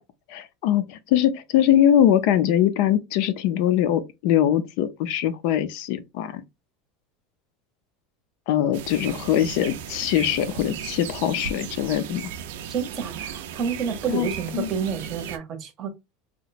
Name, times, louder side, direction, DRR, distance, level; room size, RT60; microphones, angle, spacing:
voice 1, 0.3-6.4 8.5-12.3 14.1-14.3 14.5-14.7, left 11 dB, 55° left, 0.5 m, -22 dB
sound 1, 8.7-15.4, right 8 dB, 85° right, 0.5 m, -36 dB
voice 2, 12.7-15.9, right 7 dB, 30° right, 0.7 m, -29 dB
2.9 x 2.1 x 4.0 m
supercardioid pair, 165°, 0 cm